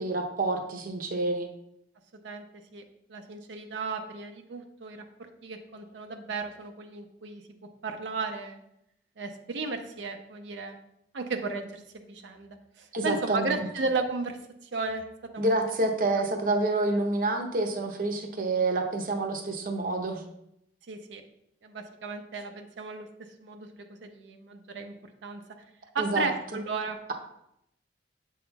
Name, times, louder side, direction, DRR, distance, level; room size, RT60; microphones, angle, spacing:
voice 1, 0.0-1.5 12.9-13.7 15.4-20.2 26.0-26.3, right 2 dB, 50° right, 4 dB, 0.7 m, -28 dB
voice 2, 3.1-7.4 7.8-8.6 9.2-10.8 11.1-14.4 14.7-15.0 15.3-15.7 20.9-21.2 21.6-23.1 23.4-24.9 25.2-25.4 25.9-27.0, right 3 dB, 80° right, 5 dB, 0.6 m, -34 dB
7.5 x 5.5 x 2.3 m, 0.79 s
head